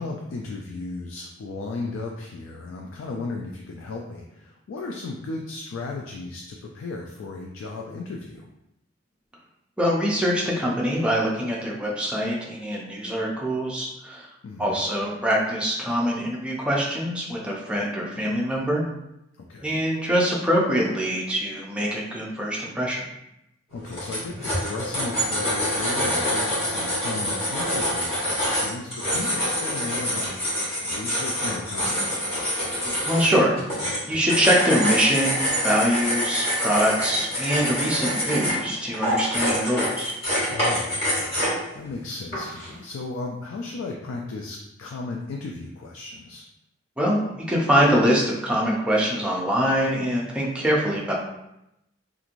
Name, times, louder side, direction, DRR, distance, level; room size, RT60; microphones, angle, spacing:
voice 1, 0.0-8.5 14.4-14.8 19.4-19.9 23.7-32.1 40.5-41.5 41.7-46.4, left 3 dB, 85° left, 0 dB, 0.3 m, -35 dB
voice 2, 9.8-14.3 14.6-18.8 19.6-23.0 32.7-33.5 33.8-40.1 47.0-51.1, equal, 5° right, -4 dB, 0.5 m, -24 dB
sound 1, 23.7-41.7 42.3-42.7, equal, 30° left, 1.3 m, -26 dB
3.0 x 2.5 x 2.5 m, 0.86 s
head